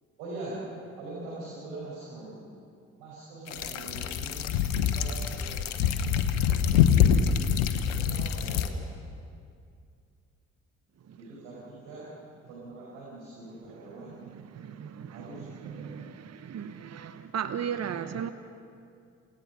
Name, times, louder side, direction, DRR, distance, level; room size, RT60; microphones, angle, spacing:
voice 1, 0.2-0.6 1.0-2.4 3.0-4.5 4.8-6.0 7.7-8.9 11.2-12.1 12.5-14.2 15.1-16.1, right 2 dB, 75° right, -7 dB, 5.6 m, -43 dB
sound 1, 3.5-8.7, left 8 dB, 80° left, 1.1 m, -25 dB
voice 2, 14.0-18.3, right 8 dB, 45° right, 10 dB, 1.1 m, -37 dB
28.5 x 18.0 x 6.0 m, 2.4 s
hypercardioid pair, 45°, 37 cm